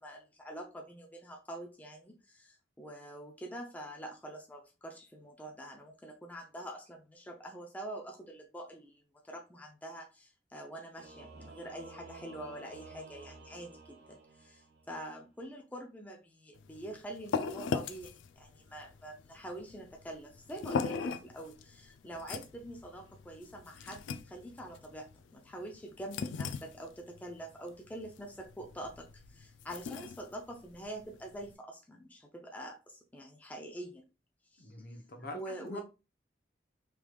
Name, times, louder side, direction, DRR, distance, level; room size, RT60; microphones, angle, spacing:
voice 1, 0.0-34.0 34.5-34.7 35.3-35.8, right 1 dB, 10° left, 0.4 m, -45 dB
Singing / Musical instrument, 11.0-15.0, right 3 dB, 60° right, 0.7 m, -52 dB
sound 1, 16.6-31.5, left 5 dB, 90° left, 0.3 m, -40 dB
voice 2, 34.6-35.8, left 1 dB, 55° left, 0.8 m, -45 dB
3.3 x 3.1 x 2.2 m
head